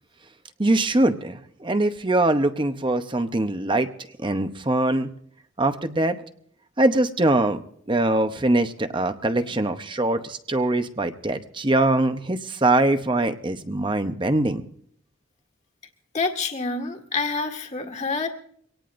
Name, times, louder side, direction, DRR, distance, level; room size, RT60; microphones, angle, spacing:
voice 1, 0.6-3.9 4.2-5.1 5.6-6.2 6.8-7.6 7.9-14.6, right 2 dB, 25° right, 9 dB, 0.8 m, -22 dB
voice 2, 16.1-18.3, left 4 dB, 35° left, 5 dB, 1.8 m, -27 dB
24.5 x 18.0 x 2.6 m, 0.63 s
head